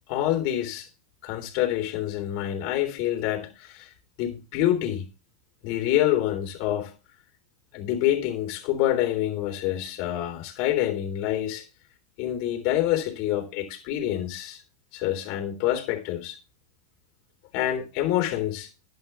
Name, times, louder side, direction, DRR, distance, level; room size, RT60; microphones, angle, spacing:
voice 1, 0.1-0.9 1.2-3.9 4.2-5.0 5.6-6.9 7.7-11.7 12.2-14.6 14.9-16.4 17.5-18.7, left 12 dB, 55° left, 3.5 m, -27 dB
11.5 x 9.2 x 3.5 m
hypercardioid pair, 105°, 0 cm